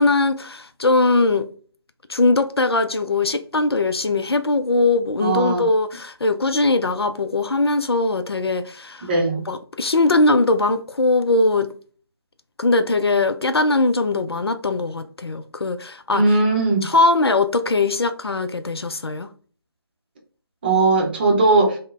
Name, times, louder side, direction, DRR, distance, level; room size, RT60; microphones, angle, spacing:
voice 1, 0.0-1.5 2.1-9.1 9.5-11.7 12.6-16.4 16.8-19.3, left 2 dB, 80° left, 0.4 m, -20 dB
voice 2, 5.2-5.7 9.0-9.4 16.1-16.9 20.6-21.8, right 3 dB, 25° right, 0.6 m, -18 dB
3.6 x 2.1 x 2.4 m
figure-of-eight pair, 150°, 13 cm